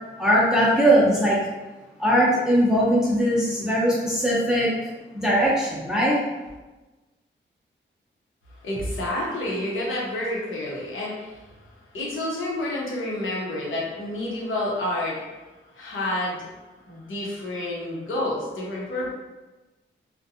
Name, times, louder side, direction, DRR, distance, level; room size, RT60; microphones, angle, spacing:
voice 1, 0.2-1.4 2.0-6.2, equal, 5° right, -7 dB, 0.5 m, -20 dB
voice 2, 8.5-15.3 15.7-16.5 16.9-19.1, left 1 dB, 85° left, -4 dB, 0.8 m, -29 dB
2.5 x 2.1 x 2.7 m, 1.1 s
wide cardioid pair, 120°, 20 cm